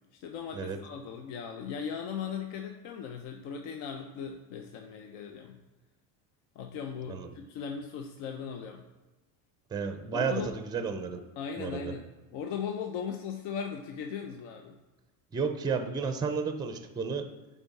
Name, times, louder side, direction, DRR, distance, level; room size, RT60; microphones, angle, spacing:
voice 1, 0.2-5.6 6.6-8.8 10.1-10.5 11.4-14.8, left 7 dB, 70° left, 4 dB, 0.8 m, -38 dB
voice 2, 9.7-11.2 11.6-11.9 15.3-17.3, right 5 dB, 10° right, 7 dB, 0.4 m, -32 dB
8.3 x 3.6 x 4.1 m, 1.2 s
cardioid pair, 120°, 49 cm